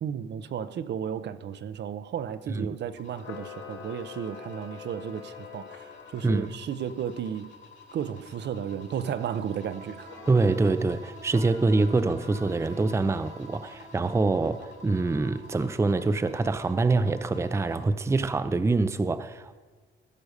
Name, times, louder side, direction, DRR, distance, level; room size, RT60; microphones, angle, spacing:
voice 1, 0.0-7.5 7.9-10.1, right 8 dB, 60° right, 0.6 m, -34 dB
sound 1, 3.0-17.8, left 5 dB, 65° left, 3.2 m, -52 dB
Camera, 3.1-6.4 10.0-10.7 11.3-13.1, left 7 dB, 85° left, 1.3 m, -46 dB
sound 2, 8.5-17.1, right 3 dB, 35° right, 1.2 m, -50 dB
voice 2, 10.3-19.6, right 3 dB, 15° right, 0.5 m, -25 dB
15.0 x 5.3 x 6.5 m
cardioid pair, 90°, 20 cm